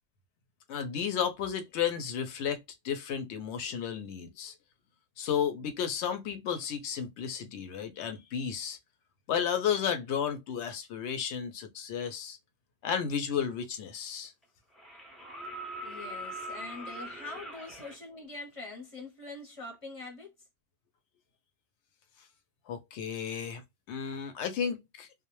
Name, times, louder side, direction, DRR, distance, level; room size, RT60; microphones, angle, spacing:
voice 1, 0.7-2.6 2.8-4.5 5.2-8.8 9.3-12.4 12.8-14.3 22.7-23.6 23.9-25.1, left 8 dB, 80° left, 0.9 m, -33 dB
sound 1, 13.6-13.7 14.7-18.0 19.7-19.8, right 1 dB, ahead, 0.5 m, -42 dB
voice 2, 15.8-20.3, left 2 dB, 35° left, 0.7 m, -43 dB
2.1 x 2.0 x 2.9 m
omnidirectional pair, 1.2 m